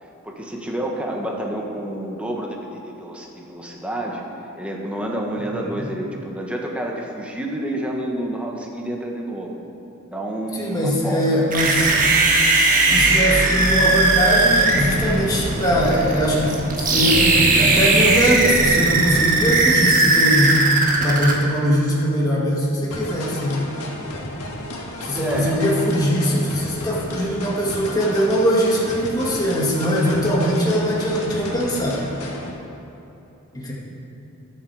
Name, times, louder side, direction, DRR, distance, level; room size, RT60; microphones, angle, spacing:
voice 1, 0.0-4.2 4.6-9.5 10.1-11.4 25.1-25.6, right 1 dB, 5° right, -1 dB, 1.4 m, -29 dB
voice 2, 10.6-11.9 12.9-20.6 21.0-23.7 25.0-32.0 33.5-33.7, equal, 15° left, -5 dB, 2.0 m, -21 dB
sound 1, 11.5-21.3, right 3 dB, 35° right, 1.6 m, -18 dB
sound 2, 22.9-32.5, left 1 dB, 85° left, 1.8 m, -33 dB
21.0 x 7.5 x 4.9 m, 3.0 s
head